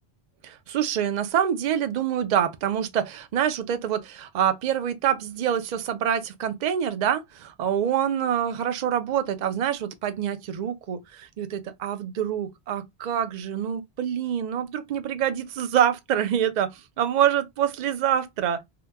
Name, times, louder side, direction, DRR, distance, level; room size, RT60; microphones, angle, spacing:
voice 1, 0.4-18.6, right 9 dB, 55° right, 0.5 m, -26 dB
2.8 x 2.1 x 3.4 m
omnidirectional pair, 1.1 m